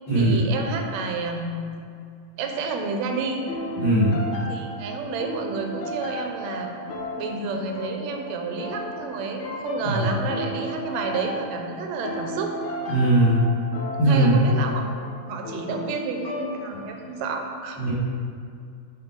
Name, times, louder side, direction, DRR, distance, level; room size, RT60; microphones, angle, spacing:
voice 1, 0.1-1.7 2.4-3.4 4.5-6.7 7.2-12.5 14.0-14.8 15.3-17.8, right 4 dB, 75° right, 3 dB, 1.8 m, -30 dB
sound 1, 3.5-17.2, equal, 85° left, 1.1 m, -35 dB
voice 2, 3.8-4.1 9.9-10.0 12.9-13.4 14.0-14.4 17.8-17.9, right 1 dB, 45° left, -11 dB, 2.1 m, -19 dB
5.9 x 5.4 x 3.9 m, 2.4 s
omnidirectional pair, 3.3 m